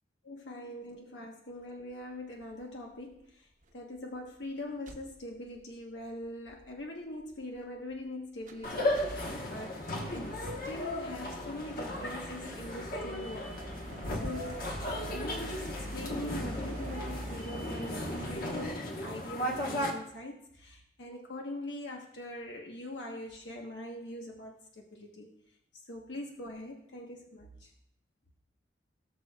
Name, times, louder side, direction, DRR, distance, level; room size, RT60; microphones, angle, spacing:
voice 1, 0.2-3.5 3.7-9.8 10.0-13.7 14.1-25.3 25.9-27.7, left 1 dB, 75° left, 0 dB, 1.3 m, -43 dB
sound 1, 2.4-2.7 3.1-3.3 3.6-3.7 4.0-4.4 4.9-5.6 6.0-6.1 6.3-6.8 7.2-8.1 8.4-18.7, right 1 dB, 45° right, 0.9 m, -46 dB
sound 2, 8.6-19.9, left 1 dB, 50° left, 1.3 m, -36 dB
18.0 x 6.4 x 2.4 m, 0.74 s
head